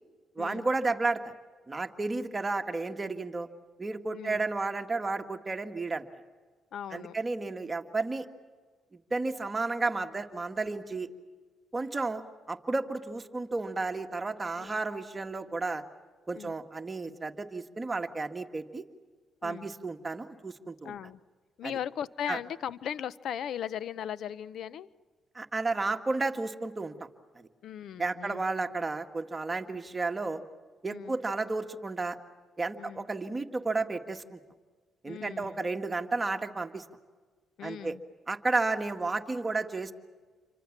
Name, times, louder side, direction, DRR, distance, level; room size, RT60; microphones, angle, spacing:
voice 1, 0.4-1.3 1.7-3.5 3.8-6.1 6.9-8.3 9.1-11.1 11.7-12.2 12.5-15.8 16.3-18.8 19.4-20.9 21.6-21.7 22.3-22.4 25.3-26.9 27.4-27.5 28.0-30.4 30.8-32.2 32.6-34.4 35.0-36.8 37.6-37.9 38.3-39.9, right 3 dB, 20° right, 5 dB, 1.8 m, -32 dB
voice 2, 4.1-4.4 6.7-7.2 14.6-14.8 16.3-16.5 19.4-19.7 20.8-21.2 21.6-24.9 27.6-28.4 30.9-31.2 32.8-33.1 35.1-35.7 37.6-38.0, left 9 dB, 70° left, 17 dB, 0.7 m, -38 dB
28.0 x 25.0 x 7.4 m, 1.4 s
cardioid pair, 90°, 0 cm